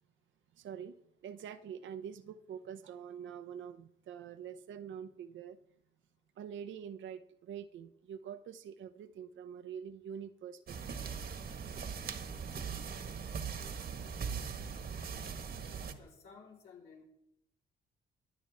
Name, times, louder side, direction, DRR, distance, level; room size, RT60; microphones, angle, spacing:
voice 1, 0.5-1.0 1.2-5.6 6.4-11.0, right 8 dB, 75° right, 11 dB, 0.8 m, -45 dB
sound 1, 10.7-15.9, right 6 dB, 50° right, 1.4 m, -40 dB
voice 2, 16.0-17.0, left 5 dB, 85° left, -3 dB, 4.0 m, -55 dB
23.5 x 8.7 x 3.6 m, 0.80 s
cardioid pair, 90°, 20 cm